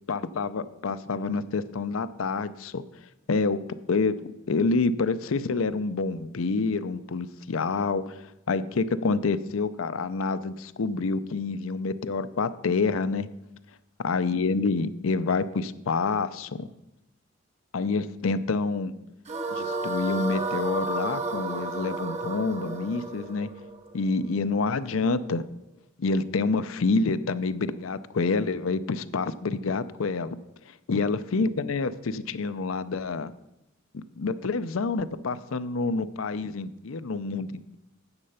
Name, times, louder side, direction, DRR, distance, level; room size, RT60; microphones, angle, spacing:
voice 1, 0.1-2.8 3.3-3.6 3.9-13.3 14.0-16.7 17.7-19.0 19.5-23.5 23.9-25.5 26.0-30.4 30.9-33.3 33.9-37.8, left 4 dB, 85° left, 13 dB, 0.6 m, -27 dB
sound 1, 19.3-24.5, right 2 dB, 35° right, 1.1 m, -32 dB
9.7 x 7.7 x 5.6 m, 0.92 s
head